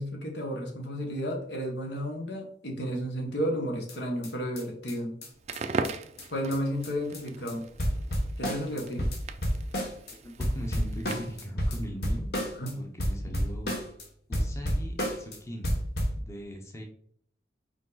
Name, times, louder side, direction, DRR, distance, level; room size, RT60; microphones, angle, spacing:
voice 1, 0.0-5.2 6.3-7.7 8.4-9.1 12.6-12.8 13.3-13.4, equal, 75° left, 1 dB, 1.5 m, -32 dB
sound 1, 3.9-4.0 4.2-4.3 4.6-4.7 4.9-5.0 5.2-5.3 5.5-5.6 5.8-5.9 6.2-6.3 6.5-6.6 6.8-7.2 7.5-7.6 7.8-10.1 10.4-12.7 13.0-14.0 14.3-15.4 15.6-16.2, equal, 60° left, 1.4 m, -30 dB
Crackle, 5.3-11.5, right 3 dB, 35° right, 0.4 m, -39 dB
voice 2, 10.1-13.7 14.3-15.8 16.1-16.8, equal, 15° left, 1 dB, 0.8 m, -40 dB
5.2 x 4.7 x 4.0 m, 0.63 s
head